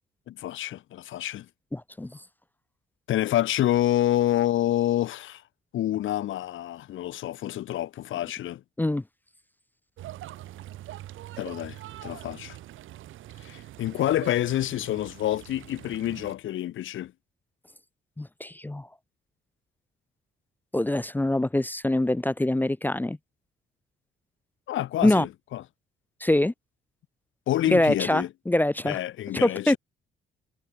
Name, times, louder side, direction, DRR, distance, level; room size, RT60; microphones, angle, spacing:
voice 1, 0.3-1.5 3.1-5.4 5.7-8.6 11.4-12.6 13.4-17.1 24.7-25.6 27.5-28.3 28.8-29.8, left 13 dB, 80° left, 2.9 m, -28 dB
voice 2, 1.7-2.2 8.8-9.0 18.2-18.9 20.7-23.2 25.0-25.3 26.2-26.5 27.7-29.0 29.3-29.8, left 1 dB, 10° left, 0.6 m, -24 dB
sound 1, 10.0-16.3, right 14 dB, 80° right, 2.2 m, -43 dB
cardioid pair, 90°, 20 cm